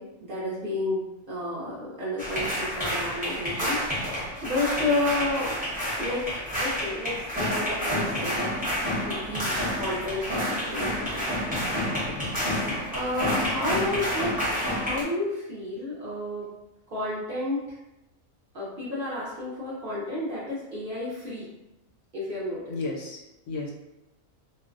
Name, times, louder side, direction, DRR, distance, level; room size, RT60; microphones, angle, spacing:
voice 1, 0.0-5.6 6.0-8.6 9.1-12.1 12.9-16.5 16.9-17.8 18.5-21.5 22.1-22.8, left 2 dB, 55° right, -7 dB, 0.6 m, -31 dB
sound 1, 2.2-15.0, equal, 10° right, 0.4 m, -29 dB
voice 2, 12.1-12.8 22.7-23.7, left 3 dB, 75° left, 0 dB, 1.0 m, -35 dB
2.4 x 2.1 x 2.4 m, 0.92 s
omnidirectional pair, 1.4 m